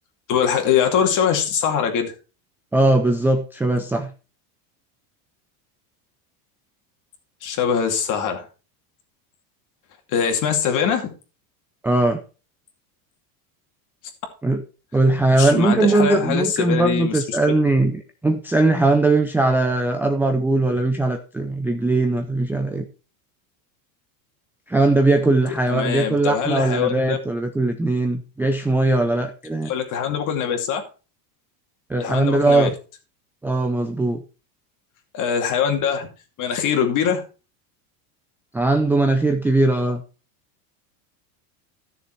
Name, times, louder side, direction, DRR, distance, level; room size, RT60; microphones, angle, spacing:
voice 1, 0.3-2.1 7.4-8.5 10.1-11.1 15.4-17.4 25.5-27.2 29.6-30.8 32.0-32.7 35.1-36.1 36.4-37.2, left 7 dB, 40° left, 5 dB, 2.5 m, -22 dB
voice 2, 2.7-4.1 11.8-12.2 14.4-14.6 14.9-22.9 24.7-29.7 31.9-32.7 33.4-34.2 38.5-40.0, right 2 dB, 5° right, 5 dB, 0.5 m, -20 dB
13.0 x 6.9 x 4.5 m, 0.34 s
supercardioid pair, 150°, 45 cm